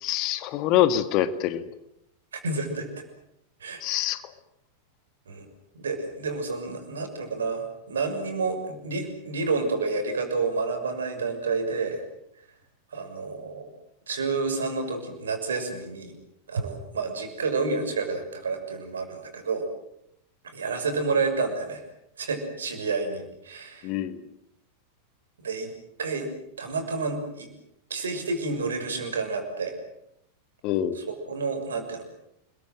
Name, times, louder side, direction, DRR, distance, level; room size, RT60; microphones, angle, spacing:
voice 1, 0.0-1.6 3.8-4.2 23.8-24.2 30.6-31.0, left 12 dB, 40° left, 13 dB, 1.7 m, -25 dB
voice 2, 2.3-2.9 3.6-3.8 5.3-5.5 5.8-12.0 12.9-13.7 14.1-16.1 16.5-19.6 20.4-21.8 22.2-23.9 25.4-25.7 26.0-26.3 26.6-27.5 27.9-29.8 30.9-32.1, right 4 dB, 70° right, 6 dB, 6.3 m, -29 dB
29.0 x 22.0 x 7.8 m, 0.78 s
figure-of-eight pair, 90°, 0 cm